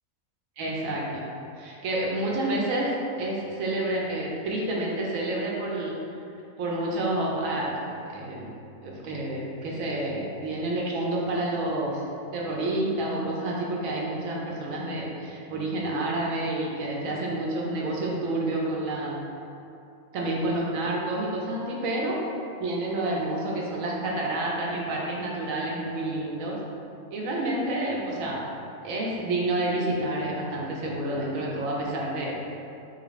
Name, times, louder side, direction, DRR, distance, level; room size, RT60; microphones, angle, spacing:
voice 1, 0.6-1.2 1.6-5.9 6.6-8.5 8.8-12.0 12.3-19.2 20.1-22.2 22.6-26.6 27.1-28.4 28.8-32.3, right 1 dB, 75° right, -3 dB, 1.1 m, -29 dB
4.0 x 2.8 x 3.1 m, 2.7 s
omnidirectional pair, 1.4 m